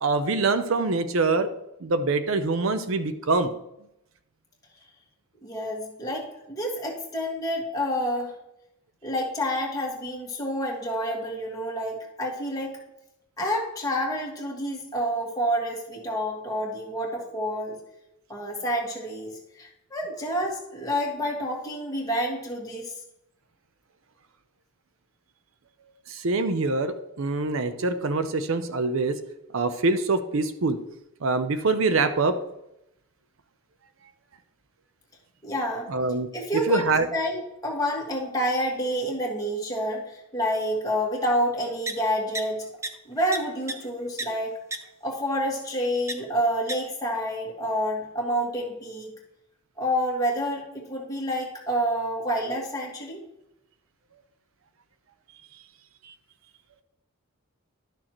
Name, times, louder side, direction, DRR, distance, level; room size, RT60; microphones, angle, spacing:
voice 1, 0.0-1.5 1.8-3.5 26.1-29.2 29.5-30.8 31.2-32.3 35.9-36.3 36.7-37.1 56.0-56.1, right 3 dB, 65° right, 10 dB, 0.6 m, -24 dB
voice 2, 5.4-8.3 9.0-12.8 13.4-17.8 18.3-22.9 35.4-35.9 36.3-36.8 37.1-42.7 43.0-44.6 45.0-49.1 49.8-53.2, equal, 15° left, -2 dB, 1.6 m, -28 dB
sound 1, 41.9-42.0 42.3-42.4 42.8-42.9 43.3-43.4 43.7-43.8 44.2-44.3 44.7-44.8 46.1-46.2 46.7-46.8, right 2 dB, 15° right, 0.4 m, -29 dB
11.5 x 6.4 x 3.0 m, 0.85 s
head